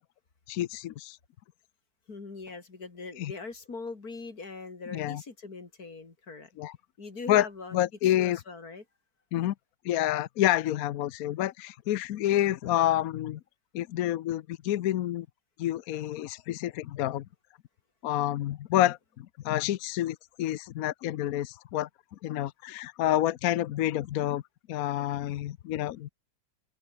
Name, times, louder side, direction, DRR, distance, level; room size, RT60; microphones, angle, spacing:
voice 1, 0.5-1.2 3.2-3.3 4.9-5.2 6.6-6.7 7.3-7.5 7.7-8.4 9.3-9.5 9.8-13.4 13.7-15.3 15.6-17.3 18.0-21.9 22.2-24.4 24.7-26.1, left 13 dB, 65° left, 0.9 m, -28 dB
voice 2, 2.1-6.5 7.0-7.8 8.0-8.8, left 4 dB, 50° left, 3.8 m, -41 dB
open air
omnidirectional pair, 2.1 m